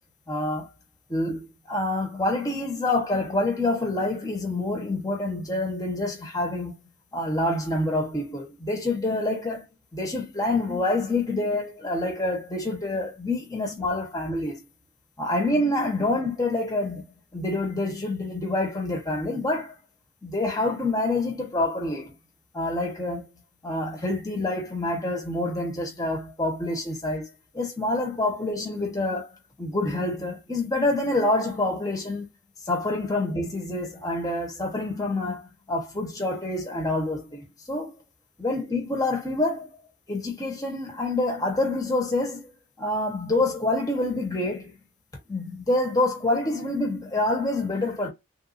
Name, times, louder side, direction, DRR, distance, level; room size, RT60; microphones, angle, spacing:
voice 1, 0.3-0.7 1.1-1.4 1.7-6.7 7.1-9.6 9.9-14.6 15.2-17.0 17.3-19.7 20.2-22.1 22.5-23.3 23.6-27.3 27.5-32.3 32.7-38.0 38.4-39.7 40.1-42.5 42.8-44.7 45.3-48.1, left 2 dB, 15° left, 1.2 m, -27 dB
3.5 x 2.7 x 2.6 m
head